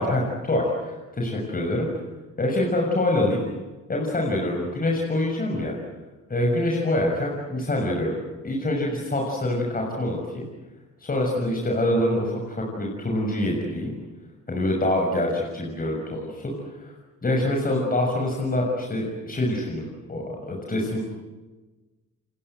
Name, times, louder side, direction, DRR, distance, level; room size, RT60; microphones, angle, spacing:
voice 1, 0.0-1.9 2.4-3.4 3.9-5.7 6.3-8.2 8.4-10.4 11.0-13.9 14.5-16.5 16.8-16.9 17.2-21.0, left 1 dB, 30° left, 0 dB, 6.5 m, -25 dB
29.5 x 23.0 x 7.9 m, 1.2 s
cardioid pair, 90°, 30 cm